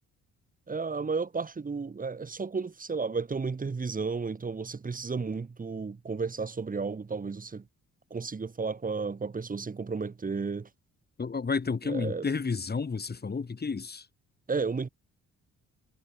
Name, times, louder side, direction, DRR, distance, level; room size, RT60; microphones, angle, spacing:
voice 1, 0.7-7.7 8.1-10.7 11.8-12.3 14.5-14.9, right 4 dB, 25° right, 2.2 m, -33 dB
voice 2, 11.2-14.0, left 5 dB, 30° left, 5.3 m, -31 dB
cardioid pair, 90°, 30 cm